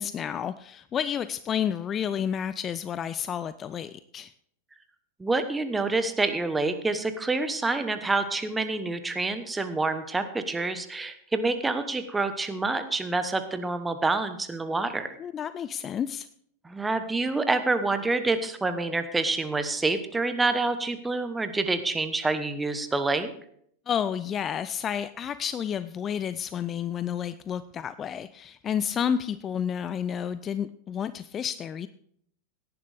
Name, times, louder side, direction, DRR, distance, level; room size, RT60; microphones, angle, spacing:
voice 1, 0.0-4.3 15.2-16.3 23.9-31.9, left 8 dB, 25° left, 15 dB, 0.4 m, -30 dB
voice 2, 5.2-15.1 16.6-23.3, right 3 dB, 10° right, 10 dB, 1.1 m, -27 dB
17.5 x 10.5 x 3.4 m, 0.67 s
figure-of-eight pair, 90°, 0 cm